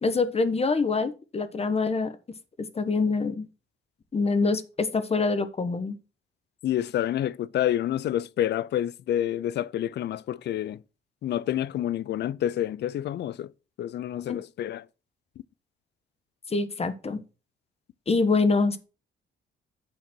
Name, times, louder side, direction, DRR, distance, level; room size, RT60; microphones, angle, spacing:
voice 1, 0.0-2.2 2.6-3.5 4.1-6.0 14.3-14.4 16.5-17.2 18.1-18.8, left 4 dB, 30° left, 1.1 m, -25 dB
voice 2, 6.6-10.8 11.2-13.5 13.8-14.8, left 11 dB, 60° left, 0.5 m, -28 dB
8.7 x 4.0 x 6.1 m
cardioid pair, 90°, 20 cm